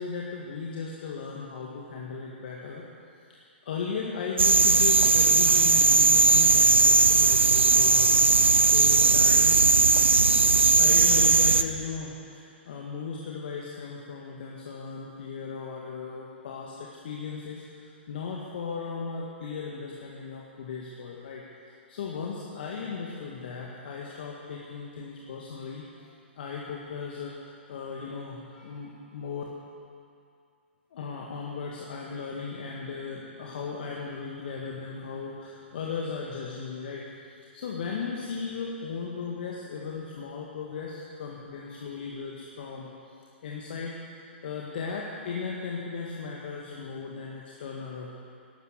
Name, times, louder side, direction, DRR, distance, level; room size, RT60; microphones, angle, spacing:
voice 1, 0.0-2.9 3.3-9.6 10.8-26.1 26.4-29.4 30.9-42.9 43.4-48.1, left 5 dB, 55° left, -2 dB, 1.9 m, -37 dB
sound 1, 4.4-11.6, right 3 dB, 85° right, 0.6 m, -19 dB
12.0 x 12.0 x 8.0 m, 2.4 s
figure-of-eight pair, 115°, 6 cm